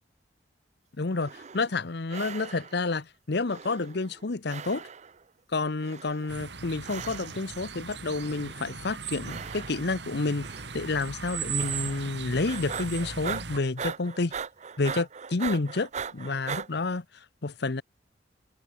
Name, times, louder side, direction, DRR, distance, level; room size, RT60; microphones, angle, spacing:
voice 1, 1.0-4.8 5.5-10.5 10.7-14.3 14.8-17.8, left 3 dB, 65° left, 0.9 m, -30 dB
sound 1, 1.1-1.8 2.1-2.9 3.5-4.2 4.5-5.2 5.8-6.4 6.8-7.5 8.1-8.7 9.2-10.0 10.4-10.9 11.6-12.2 12.5-16.7, right 6 dB, 40° right, 0.7 m, -39 dB
sound 2, 6.3-13.6, right 6 dB, 65° right, 2.5 m, -38 dB
open air
head